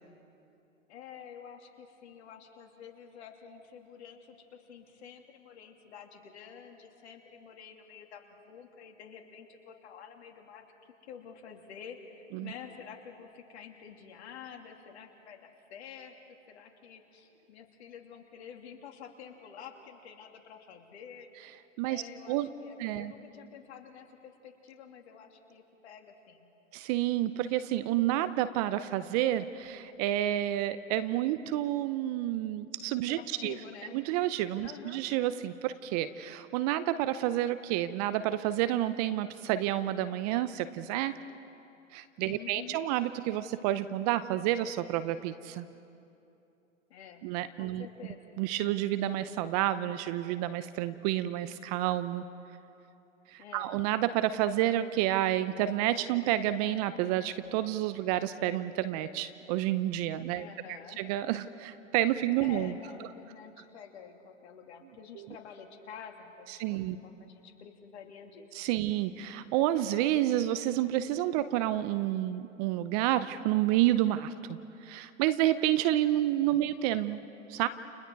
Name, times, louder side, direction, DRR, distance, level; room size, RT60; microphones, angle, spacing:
voice 1, 0.9-10.6 11.0-16.2 16.5-21.3 21.8-26.5 33.0-34.0 34.6-35.0 42.2-42.8 46.9-47.2 47.6-48.2 53.4-53.7 60.3-61.0 62.4-68.4, left 7 dB, 55° left, 3 dB, 3.0 m, -49 dB
voice 2, 22.8-23.1 26.7-33.6 33.9-41.2 41.9-45.7 47.2-47.9 48.4-52.2 53.3-60.5 61.0-62.7 65.2-65.3 66.5-67.0 68.5-77.2 77.5-77.7, right 13 dB, 30° right, 13 dB, 0.6 m, -29 dB
30.0 x 29.5 x 4.7 m, 2.8 s
hypercardioid pair, 120°, 39 cm